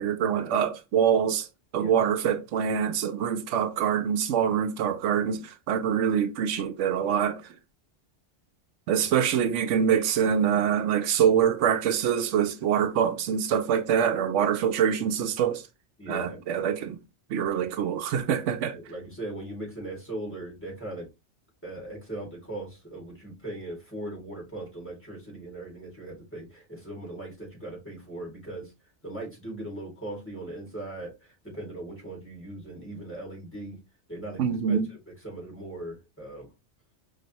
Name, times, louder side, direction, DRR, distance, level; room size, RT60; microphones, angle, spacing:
voice 1, 0.0-1.5 1.7-7.5 8.9-15.6 16.1-17.0 17.3-18.8 34.4-34.9, right 8 dB, 85° right, 0.9 m, -25 dB
voice 2, 16.0-16.4 18.7-21.1 21.6-28.7 29.0-33.8 34.1-35.0 35.2-36.5, right 1 dB, 10° left, 2.1 m, -39 dB
5.2 x 2.7 x 2.8 m
omnidirectional pair, 1.2 m